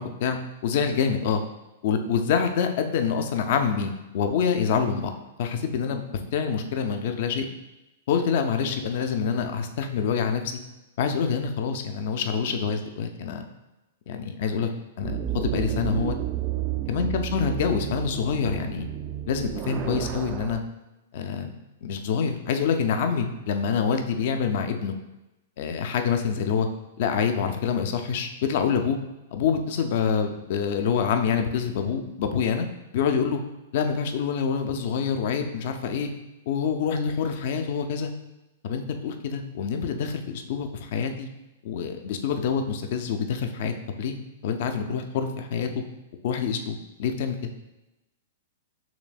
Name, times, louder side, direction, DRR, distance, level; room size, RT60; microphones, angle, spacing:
voice 1, 0.0-1.4 1.8-5.1 5.4-6.0 6.3-7.5 8.1-10.6 11.0-13.5 14.1-14.7 15.0-16.2 16.9-18.9 19.3-20.6 21.1-21.5 21.8-24.9 25.6-26.7 27.0-29.0 29.3-32.7 32.9-33.4 33.7-36.1 36.5-38.1 38.6-41.3 41.6-44.2 44.4-45.7 46.2-47.4, left 6 dB, 50° left, 6 dB, 0.5 m, -26 dB
sound 1, 15.0-20.6, right 11 dB, 30° right, 0.3 m, -31 dB
5.9 x 3.3 x 2.3 m, 0.98 s
figure-of-eight pair, 105°, 0 cm